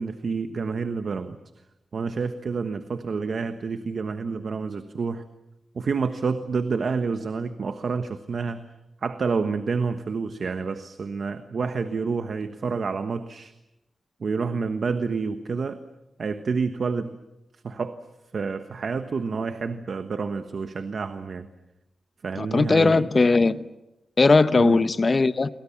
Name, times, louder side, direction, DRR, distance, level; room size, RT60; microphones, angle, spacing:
voice 1, 0.0-1.4 1.9-5.2 5.7-8.6 9.0-13.5 14.2-15.8 16.2-17.1 17.6-18.0 18.3-21.5 22.2-23.1 24.5-24.8, right 5 dB, 60° right, 1.3 m, -28 dB
voice 2, 22.4-23.6 24.2-25.5, left 3 dB, 35° left, 0.9 m, -19 dB
30.0 x 24.0 x 7.3 m
wide cardioid pair, 115°, 0 cm